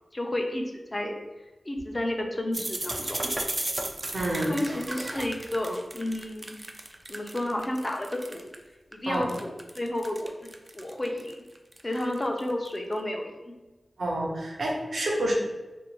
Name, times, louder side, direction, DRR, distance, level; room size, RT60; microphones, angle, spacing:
voice 1, 0.1-1.2 1.6-3.3 4.5-6.6 7.1-8.5 8.9-11.4 11.8-13.5, left 1 dB, 30° left, 3 dB, 0.5 m, -31 dB
sound 1, 2.5-8.6 8.9-12.8, right 1 dB, 30° right, 0.3 m, -35 dB
voice 2, 4.1-4.8 9.1-9.3 14.0-15.3, right 1 dB, 70° right, -2 dB, 0.7 m, -28 dB
2.8 x 2.6 x 3.0 m, 1.1 s
wide cardioid pair, 60°, 0 cm